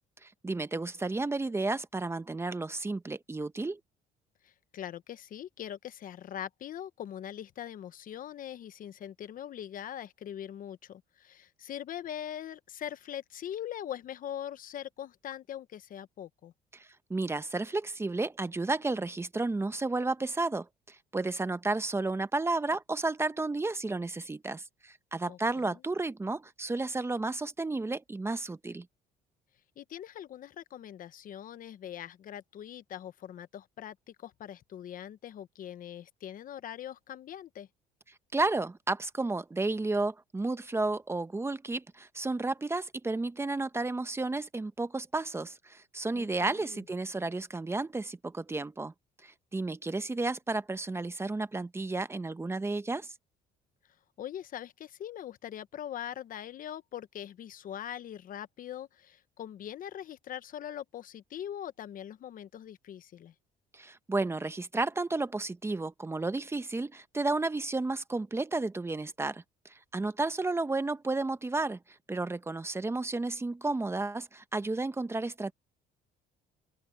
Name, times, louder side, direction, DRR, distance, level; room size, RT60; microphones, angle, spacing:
voice 1, 0.2-3.8 16.7-28.9 38.3-48.9 49.2-53.1 63.7-75.5, right 3 dB, 15° right, 0.9 m, -32 dB
voice 2, 4.4-16.5 25.3-25.8 29.8-37.7 46.1-46.8 54.2-63.3, left 10 dB, 55° left, 1.0 m, -42 dB
open air
cardioid pair, 110°, 17 cm